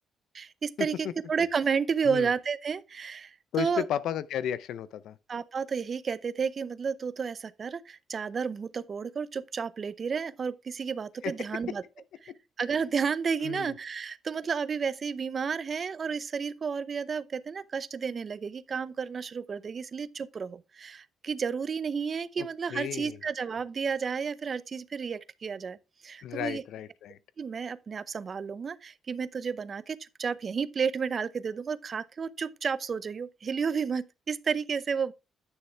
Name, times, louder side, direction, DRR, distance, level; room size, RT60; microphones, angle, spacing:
voice 1, 0.3-3.8 5.3-11.8 12.2-12.3 12.6-25.8 26.0-26.6 27.4-35.1, right 6 dB, 45° right, 0.6 m, -32 dB
voice 2, 3.5-5.2 11.2-11.3 13.4-13.7 22.4-23.2 26.2-27.2, left 10 dB, 80° left, 0.5 m, -33 dB
9.3 x 6.5 x 3.4 m
cardioid pair, 90°, 0 cm